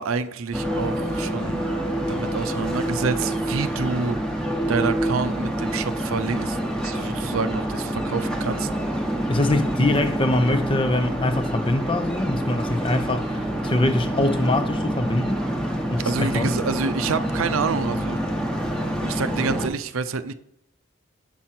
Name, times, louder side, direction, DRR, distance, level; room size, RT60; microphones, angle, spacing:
voice 1, 0.0-4.2 4.7-6.6 6.8-8.7 16.0-18.3 19.0-20.3, right 4 dB, 80° right, 0.6 m, -28 dB
sound 1, 0.5-19.7, right 1 dB, 5° left, 1.0 m, -27 dB
voice 2, 9.3-15.5 15.9-16.5, left 2 dB, 25° left, 0.6 m, -23 dB
7.5 x 5.9 x 4.2 m
head